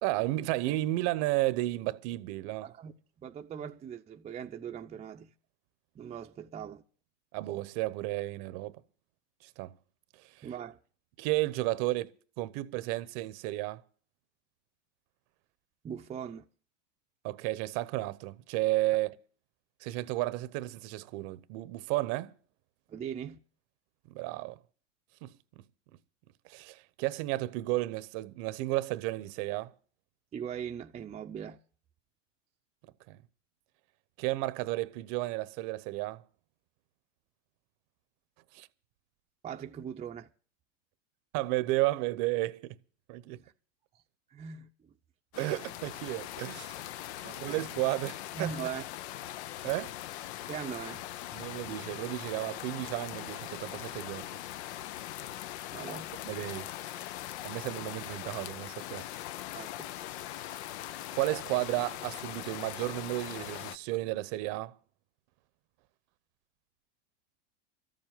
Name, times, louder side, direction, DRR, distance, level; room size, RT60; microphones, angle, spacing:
voice 1, 0.0-2.7 7.3-8.8 9.6-9.7 10.4-10.5 11.2-12.1 12.4-13.8 17.2-19.1 19.8-22.3 24.1-24.6 25.2-25.3 26.4-29.7 33.1-33.2 34.2-36.2 38.5-38.7 41.3-42.8 43.1-43.4 45.3-46.8 47.4-48.5 49.6-49.9 51.3-54.3 56.2-56.7 57.4-59.0 61.2-64.7, right 18 dB, 50° right, 1.0 m, -32 dB
voice 2, 2.6-5.3 5.9-6.8 10.4-10.8 15.8-16.4 22.9-23.4 30.3-31.6 39.4-40.3 43.3-43.5 44.3-44.9 47.2-47.6 48.3-48.8 50.5-51.0 55.7-56.2 57.8-57.9 59.5-59.9, right 7 dB, 20° right, 0.7 m, -40 dB
sound 1, 45.3-63.8, left 13 dB, 65° left, 0.7 m, -41 dB
13.5 x 7.6 x 9.3 m
hypercardioid pair, 125°, 37 cm